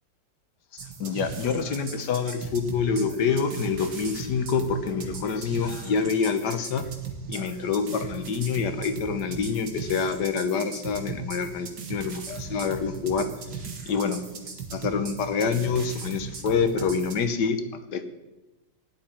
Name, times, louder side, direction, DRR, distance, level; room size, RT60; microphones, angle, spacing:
sound 1, 0.8-17.2, right 5 dB, 60° right, 2.0 m, -38 dB
voice 1, 1.0-6.9 7.3-13.3 13.9-14.2 14.7-17.6 17.9-18.0, left 5 dB, 65° left, 9 dB, 1.6 m, -26 dB
17.5 x 11.0 x 4.5 m, 1.0 s
omnidirectional pair, 2.0 m